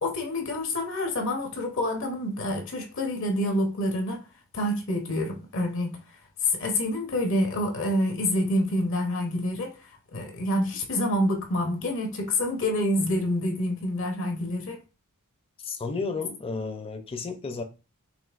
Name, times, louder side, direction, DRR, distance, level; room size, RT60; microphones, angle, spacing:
voice 1, 0.0-4.2 4.5-6.0 6.4-9.7 10.1-14.8, left 1 dB, 65° left, 0.8 m, -27 dB
voice 2, 15.6-17.6, left 4 dB, 25° left, 0.5 m, -32 dB
5.2 x 3.1 x 2.4 m
head